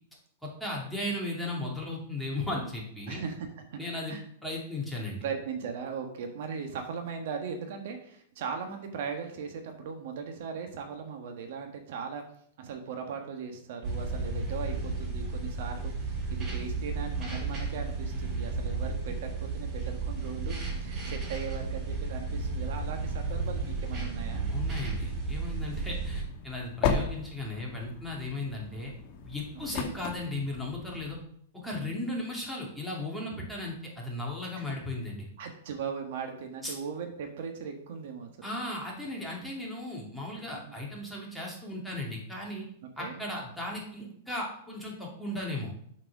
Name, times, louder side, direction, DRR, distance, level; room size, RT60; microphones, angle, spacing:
voice 1, 0.4-3.2 3.8-4.2 4.4-5.2 24.5-28.9 29.3-31.2 31.6-35.3 36.6-36.8 38.4-42.7 43.0-45.7, left 1 dB, ahead, -4 dB, 2.5 m, -36 dB
voice 2, 3.1-3.8 4.1-4.2 5.2-12.2 12.6-24.5 25.7-25.9 29.7-29.9 33.3-33.4 34.7-34.8 35.4-38.5 40.5-40.7 42.8-43.2, right 6 dB, 65° right, 4 dB, 1.4 m, -38 dB
sound 1, 13.8-26.2, right 3 dB, 25° right, 3.1 m, -33 dB
sound 2, 26.1-31.2, left 5 dB, 45° left, 1.4 m, -35 dB
7.6 x 4.7 x 6.0 m, 0.67 s
hypercardioid pair, 145°, 0 cm